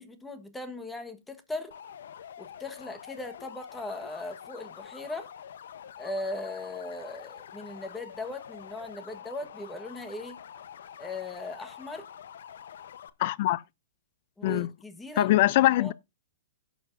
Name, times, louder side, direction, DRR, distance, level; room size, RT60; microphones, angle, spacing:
voice 1, 0.0-1.8 2.4-5.3 6.0-10.4 11.0-12.1 14.4-15.4 15.8-15.9, left 2 dB, 10° left, 1.4 m, -38 dB
sound 1, 1.7-13.1, left 8 dB, 75° left, 0.9 m, -46 dB
voice 2, 13.2-13.6 14.4-14.7 15.2-15.9, left 16 dB, 55° left, 0.4 m, -22 dB
16.5 x 6.9 x 2.6 m
hypercardioid pair, 135°, 0 cm